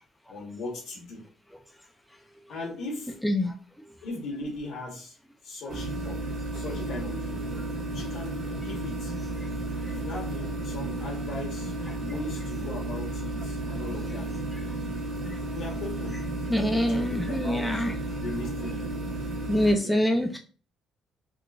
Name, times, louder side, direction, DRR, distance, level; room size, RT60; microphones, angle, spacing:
voice 1, 0.3-1.2 2.5-3.2 4.0-5.2 5.4-6.2 6.5-7.4 7.9-9.1 9.9-14.4 15.5-16.2 16.5-17.8 18.1-18.9 19.8-20.0, left 2 dB, 70° left, -1 dB, 1.2 m, -38 dB
sound 1, 5.7-19.7, right 2 dB, 40° right, 0.7 m, -33 dB
voice 2, 16.5-17.9 19.5-20.4, equal, 5° left, 3 dB, 0.3 m, -25 dB
3.7 x 2.4 x 2.4 m, 0.37 s
cardioid pair, 145°, 0 cm